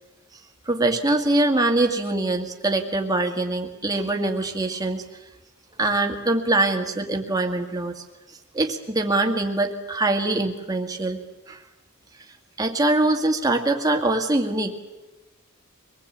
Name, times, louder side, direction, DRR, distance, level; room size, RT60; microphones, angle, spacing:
voice 1, 0.7-5.0 5.8-8.0 8.5-11.2 11.5-11.6 12.6-14.8, right 2 dB, 15° right, 3 dB, 2.0 m, -23 dB
24.5 x 19.5 x 8.7 m, 1.1 s
head